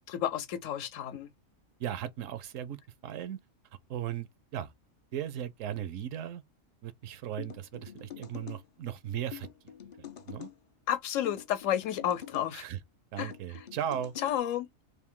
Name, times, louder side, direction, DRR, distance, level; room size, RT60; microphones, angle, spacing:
voice 1, 0.1-1.3 10.9-12.6 13.2-13.3 14.2-14.7, left 10 dB, 80° left, 1.0 m, -31 dB
voice 2, 1.8-3.4 3.9-4.7 5.1-6.4 6.8-9.5 10.0-10.5 12.5-12.8 13.1-14.1, right 10 dB, 80° right, 1.0 m, -37 dB
sound 1, 7.4-8.6 9.3-10.5 11.2-12.5 13.2-14.4, left 11 dB, 55° left, 0.5 m, -45 dB
3.4 x 2.5 x 3.6 m
omnidirectional pair, 1.3 m